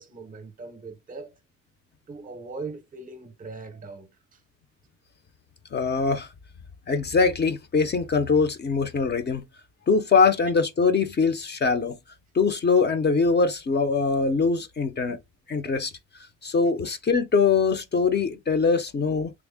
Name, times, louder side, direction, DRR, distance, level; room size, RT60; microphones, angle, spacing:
voice 1, 0.0-1.3 2.1-4.1 15.1-15.2 16.8-17.0, right 3 dB, 25° right, 0.6 m, -40 dB
voice 2, 5.7-6.3 6.9-9.4 9.9-12.0 12.3-15.2 15.5-15.9 16.4-19.3, left 4 dB, 35° left, 0.5 m, -22 dB
3.4 x 2.0 x 3.4 m
cardioid pair, 135°, 32 cm